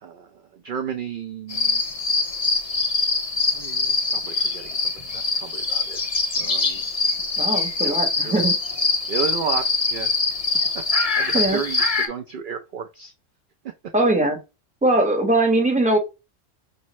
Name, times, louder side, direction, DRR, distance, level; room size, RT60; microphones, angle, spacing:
voice 1, 0.0-1.8 3.5-6.0 6.4-6.9 7.8-8.0 8.2-8.4 9.1-10.2 11.0-13.1, right 7 dB, 60° right, 6 dB, 0.5 m, -33 dB
sound 1, 1.5-12.1, left 3 dB, 35° left, 0.9 m, -23 dB
voice 2, 7.4-8.5 11.3-11.6 13.9-14.4 14.8-16.0, right 2 dB, 5° right, 1 dB, 1.0 m, -20 dB
5.4 x 2.5 x 3.0 m, 0.26 s
omnidirectional pair, 1.3 m